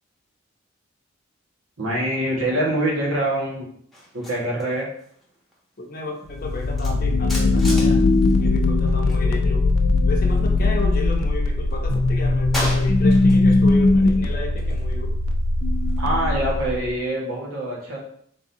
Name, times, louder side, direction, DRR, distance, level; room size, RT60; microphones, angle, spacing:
voice 1, 1.8-3.7 4.1-4.9 16.0-18.0, right 1 dB, 90° right, -3 dB, 1.5 m, -24 dB
sound 1, 3.9-9.3 9.5-11.2 11.5-13.6 14.0-16.7, left 1 dB, ahead, 0.9 m, -37 dB
voice 2, 5.8-8.0 8.4-9.7 10.0-15.1, left 2 dB, 45° left, 1 dB, 0.7 m, -32 dB
sound 2, 6.3-16.9, left 2 dB, 85° left, 0.5 m, -19 dB
3.9 x 3.7 x 2.7 m, 0.65 s
head